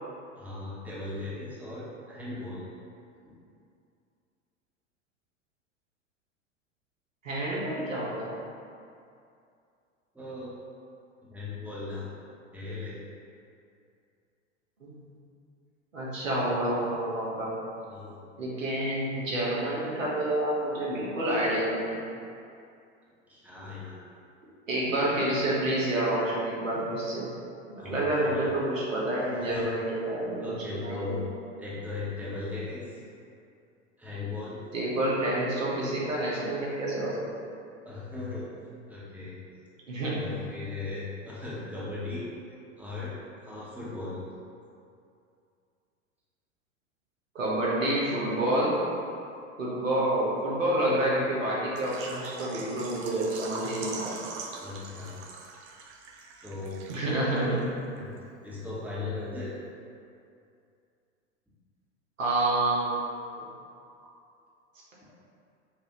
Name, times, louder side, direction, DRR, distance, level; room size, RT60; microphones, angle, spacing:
voice 1, 0.4-2.7 10.1-10.5 11.3-12.0 12.5-13.0 17.9-18.3 23.3-24.1 27.8-28.0 28.2-28.4 29.4-29.7 30.4-31.2 31.6-33.0 34.0-34.6 37.8-38.5 38.9-39.3 40.1-42.3 42.8-43.2 43.4-44.2 54.6-55.1 56.4-56.8 58.0-58.1 58.4-59.5, left 3 dB, 5° right, -8 dB, 1.2 m, -37 dB
voice 2, 7.2-8.3 14.8-15.0 15.9-17.5 18.4-22.0 24.7-27.3 27.7-30.4 30.7-31.2 34.7-37.2 39.9-40.4 47.3-48.8 49.6-54.1 56.9-57.6 62.2-63.0 63.3-63.4, right 1 dB, 80° right, -6 dB, 1.2 m, -28 dB
Water / Liquid, 51.8-57.4 57.6-57.7 58.2-58.3, right 4 dB, 60° right, 0.6 m, -42 dB
6.5 x 2.7 x 3.0 m, 2.5 s
figure-of-eight pair, 85°, 38 cm